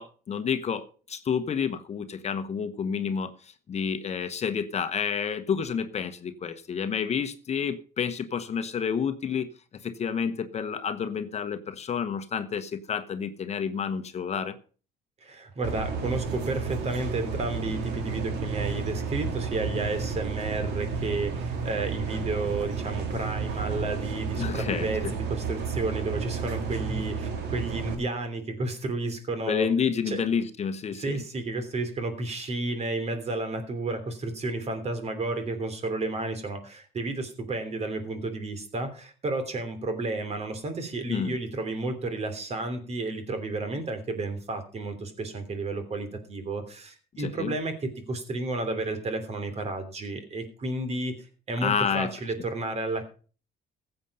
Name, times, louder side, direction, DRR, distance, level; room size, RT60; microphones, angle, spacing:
voice 1, 0.0-9.5 9.8-14.6 24.4-25.1 29.5-31.2 41.1-41.4 47.1-47.5 51.6-52.1, left 6 dB, 40° left, 10 dB, 1.1 m, -29 dB
voice 2, 15.2-29.7 30.1-30.2 31.0-47.7 48.1-53.0, right 2 dB, 40° right, 9 dB, 3.2 m, -32 dB
sound 1, 15.6-27.9, right 5 dB, 85° right, 3.1 m, -32 dB
15.0 x 8.0 x 5.5 m, 0.39 s
cardioid pair, 110°, 17 cm